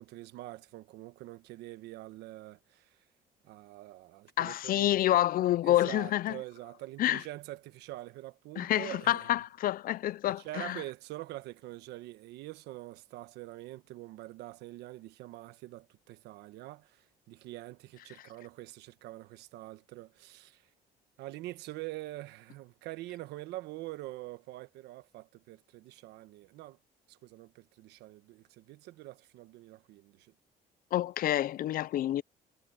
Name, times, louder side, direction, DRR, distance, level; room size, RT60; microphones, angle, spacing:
voice 1, 0.0-3.0 3.4-4.9 5.6-9.3 10.4-20.7 21.2-26.8 27.1-30.3, right 17 dB, 85° right, 1.2 m, -45 dB
voice 2, 4.4-6.4 7.0-7.2 8.6-10.8 30.9-32.2, left 13 dB, 60° left, 0.6 m, -28 dB
cardioid pair, 110°, 17 cm